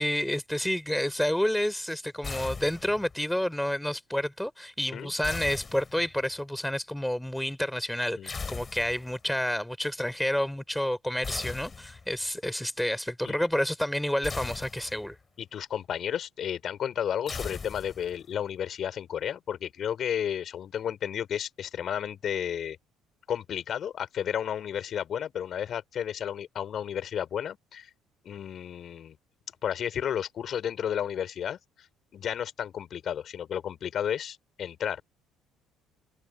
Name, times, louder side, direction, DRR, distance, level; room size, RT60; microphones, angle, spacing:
voice 1, 0.0-15.1, left 1 dB, 5° left, 3.3 m, -29 dB
sound 1, 2.2-3.2 5.2-6.3 8.3-9.2 11.2-12.2 14.2-15.2 17.3-18.3, left 4 dB, 30° left, 4.3 m, -39 dB
voice 2, 15.4-22.8 23.3-27.9 28.2-29.2 29.6-31.6 32.1-35.0, left 9 dB, 55° left, 4.3 m, -32 dB
supercardioid pair, 80°, 0 cm